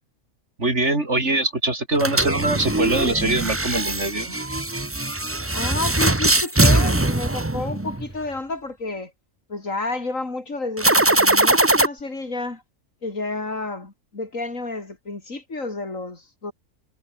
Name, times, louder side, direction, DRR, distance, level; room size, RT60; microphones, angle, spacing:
voice 1, 0.6-4.4, right 2 dB, 60° right, 5.3 m, -23 dB
sound 1, 2.0-8.1 10.8-11.9, right 2 dB, 10° right, 0.9 m, -21 dB
voice 2, 5.5-9.1 9.5-12.6 13.0-16.5, left 3 dB, 75° left, 4.3 m, -30 dB
omnidirectional pair, 1.4 m